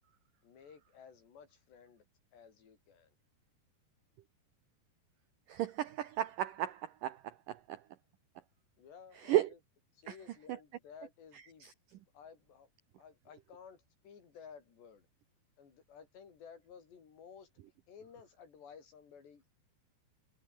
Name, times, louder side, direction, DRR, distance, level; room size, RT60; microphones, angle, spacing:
voice 1, 0.4-2.1 2.3-3.2 8.8-9.6 9.9-11.7 12.1-12.7 13.0-15.1 15.6-17.5 17.9-19.5, left 7 dB, 70° left, 6.9 m, -55 dB
voice 2, 5.5-7.8 9.2-9.5 10.1-10.2 11.6-11.7, right 13 dB, 90° right, 1.8 m, -34 dB
omnidirectional pair, 5.2 m